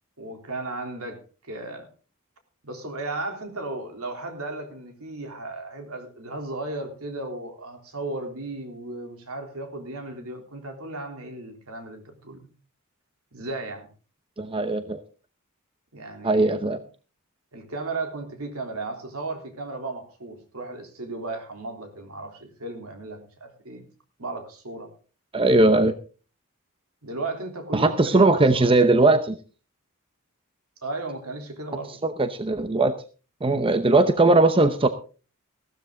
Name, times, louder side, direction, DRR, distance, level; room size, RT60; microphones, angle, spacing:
voice 1, 0.2-1.9 2.6-12.5 13.3-13.9 15.9-16.8 17.5-23.8 24.2-24.9 27.0-28.7 30.8-32.0, right 2 dB, 70° right, 4 dB, 3.5 m, -35 dB
voice 2, 14.4-15.0 16.2-16.8 25.3-25.9 27.7-29.4 32.0-32.9 33.4-34.9, right 2 dB, 25° right, 9 dB, 0.8 m, -19 dB
15.5 x 13.0 x 3.9 m, 0.37 s
head